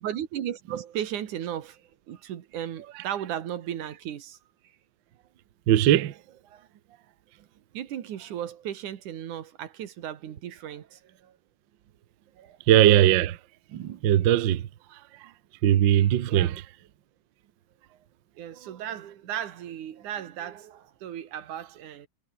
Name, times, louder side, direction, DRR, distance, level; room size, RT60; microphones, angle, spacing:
voice 1, 0.0-4.4 4.6-4.8 6.5-6.7 7.7-11.4 12.4-12.6 16.3-16.6 18.4-22.1, right 10 dB, 85° right, 3.2 m, -36 dB
voice 2, 5.7-6.1 12.7-13.4 13.7-14.6 15.6-16.6, right 12 dB, 65° right, 1.1 m, -20 dB
omnidirectional pair, 3.5 m